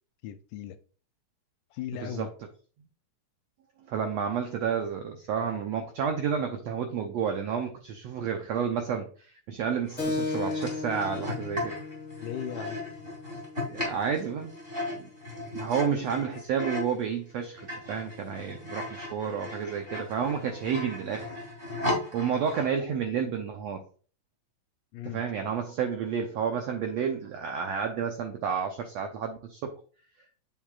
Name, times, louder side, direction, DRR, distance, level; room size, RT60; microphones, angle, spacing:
voice 1, 0.2-0.8 1.7-2.3 12.2-12.8 24.9-25.2, left 10 dB, 80° left, 10 dB, 2.0 m, -37 dB
voice 2, 3.9-11.8 13.7-14.5 14.9-15.1 15.5-21.3 22.1-23.8 25.0-29.7, right 7 dB, 85° right, 4 dB, 1.5 m, -30 dB
sound 1, 9.9-17.0 17.4-22.7, left 2 dB, 20° right, 2.4 m, -37 dB
Keyboard (musical), 10.0-15.1, left 3 dB, 5° left, 2.0 m, -36 dB
7.8 x 7.3 x 2.4 m, 0.41 s
omnidirectional pair, 3.9 m